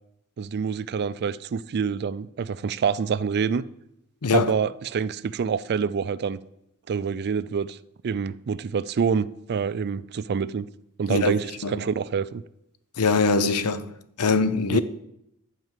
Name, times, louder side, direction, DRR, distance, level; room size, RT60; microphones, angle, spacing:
voice 1, 0.4-3.6 4.3-6.4 6.9-7.8 8.0-10.7 11.0-12.4 14.7-14.8, right 6 dB, 45° right, 0.4 m, -26 dB
voice 2, 4.2-4.5 11.1-11.8 13.0-13.9 14.2-14.8, left 4 dB, 85° left, 0.7 m, -23 dB
11.0 x 4.9 x 7.4 m
head